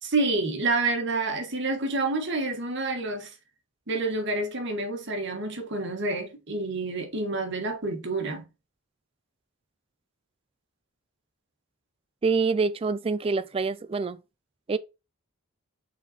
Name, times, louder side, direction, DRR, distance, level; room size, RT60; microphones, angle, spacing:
voice 1, 0.0-3.3 3.9-8.5, right 2 dB, 55° right, 1.5 m, -28 dB
voice 2, 12.2-14.2 14.7-14.8, right 4 dB, 25° right, 0.3 m, -26 dB
5.8 x 4.1 x 4.2 m
head